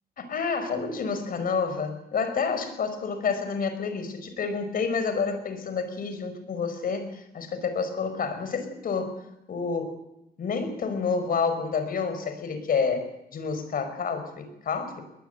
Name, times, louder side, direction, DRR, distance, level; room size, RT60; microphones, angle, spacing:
voice 1, 0.2-9.1 9.5-9.9 10.4-15.0, left 5 dB, 60° left, 9 dB, 5.1 m, -29 dB
22.5 x 20.0 x 8.0 m, 0.88 s
wide cardioid pair, 130°, 17 cm